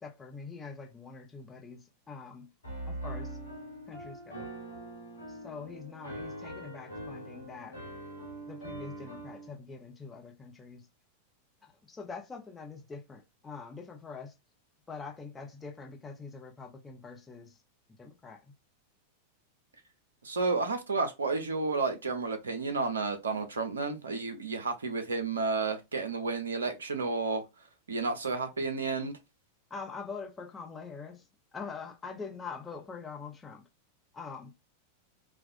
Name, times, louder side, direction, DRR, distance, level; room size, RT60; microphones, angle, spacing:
voice 1, 0.0-2.5 2.8-3.4 3.9-4.5 5.3-7.8 8.5-10.9 11.6-14.3 14.9-17.6 18.0-18.4 29.7-31.3 31.5-33.6 34.1-34.5, left 5 dB, 15° left, 0.6 m, -44 dB
Piano, 2.6-9.5, right 1 dB, 75° left, 0.9 m, -42 dB
voice 2, 20.2-27.4 27.9-29.1, right 4 dB, 70° right, 0.5 m, -31 dB
2.4 x 2.2 x 2.5 m
figure-of-eight pair, 90°, 0 cm